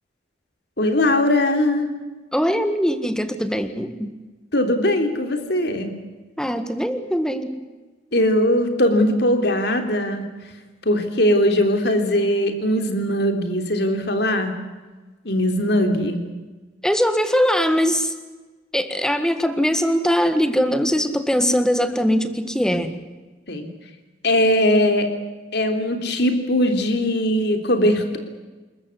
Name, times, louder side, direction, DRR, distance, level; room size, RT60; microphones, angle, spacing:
voice 1, 0.8-1.9 4.5-5.9 8.1-10.2 10.8-14.5 15.2-16.2 23.5-23.7 24.2-25.1 25.5-28.2, left 1 dB, 60° left, 6 dB, 3.3 m, -20 dB
voice 2, 2.3-4.1 6.4-7.6 16.8-18.1 18.7-22.9, equal, 5° left, 9 dB, 1.7 m, -21 dB
28.5 x 14.0 x 9.8 m, 1.2 s
head